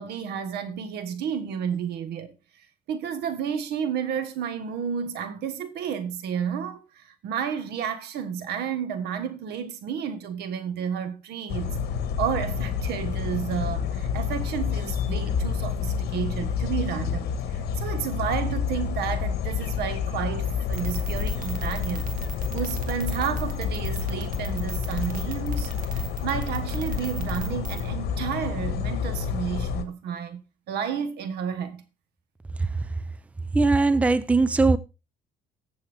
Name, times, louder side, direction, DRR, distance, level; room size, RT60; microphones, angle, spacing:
voice 1, 0.0-2.3 2.9-11.8 12.2-22.1 22.5-25.7 26.2-31.8, right 8 dB, 75° right, 1.4 m, -31 dB
sound 1, 11.5-29.8, left 7 dB, 70° left, 1.4 m, -29 dB
sound 2, 20.7-27.9, right 7 dB, 55° right, 2.2 m, -38 dB
voice 2, 33.5-34.8, right 3 dB, 10° right, 0.5 m, -20 dB
15.0 x 7.1 x 3.4 m
cardioid pair, 110°, 17 cm